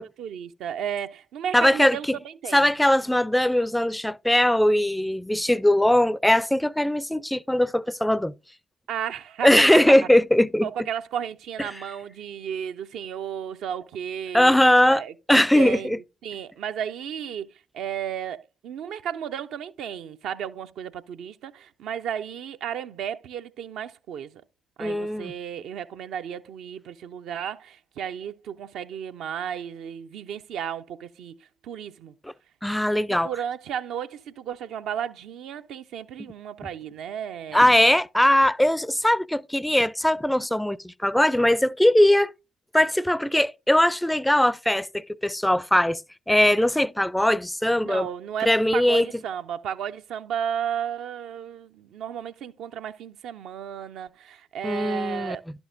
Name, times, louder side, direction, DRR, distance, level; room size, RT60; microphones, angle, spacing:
voice 1, 0.0-2.7 8.9-9.9 10.6-14.6 14.9-15.1 15.5-17.5 17.7-24.3 24.8-31.4 31.6-32.1 33.1-37.7 47.9-55.4, right 9 dB, 65° right, 0.4 m, -33 dB
voice 2, 1.5-2.2 2.5-8.3 9.4-10.7 14.3-15.0 15.3-16.0 24.8-25.3 32.2-32.3 32.6-33.3 37.5-42.3 42.7-46.0 46.3-48.1 48.5-49.1 54.6-55.4, left 1 dB, 5° left, 0.4 m, -20 dB
11.5 x 6.1 x 2.5 m
figure-of-eight pair, 40°, 0 cm